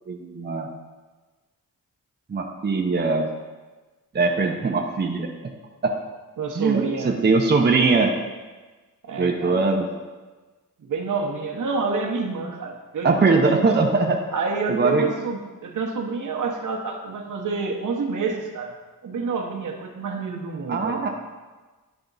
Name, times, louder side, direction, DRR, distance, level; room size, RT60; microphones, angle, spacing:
voice 1, 0.1-0.7 2.3-3.3 4.1-5.3 5.8-5.9 6.5-8.2 9.2-9.9 13.0-14.2 14.7-15.1 20.7-21.1, right 3 dB, 30° right, 1 dB, 0.7 m, -21 dB
voice 2, 6.4-7.1 9.0-9.6 10.8-13.8 14.3-18.7 19.0-21.1, right 4 dB, 60° right, 1 dB, 0.9 m, -28 dB
10.0 x 3.5 x 4.0 m, 1.3 s
cardioid pair, 80°, 34 cm